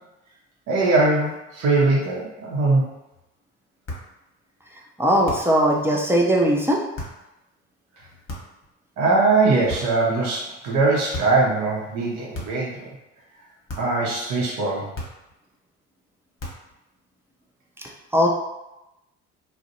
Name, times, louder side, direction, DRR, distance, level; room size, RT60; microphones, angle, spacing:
voice 1, 0.7-2.8 9.0-12.9 13.8-14.9, right 3 dB, 45° right, -4 dB, 0.7 m, -21 dB
sound 1, 3.8-4.2 5.2-5.6 6.9-7.2 8.3-8.7 9.7-10.1 11.1-11.5 12.3-12.7 13.7-14.0 14.9-15.4 16.4-16.8, left 1 dB, 35° left, 1.0 m, -35 dB
voice 2, 5.0-6.8 17.8-18.3, equal, 5° right, -2 dB, 0.4 m, -20 dB
2.4 x 2.0 x 2.6 m, 0.93 s
hypercardioid pair, 55°, 38 cm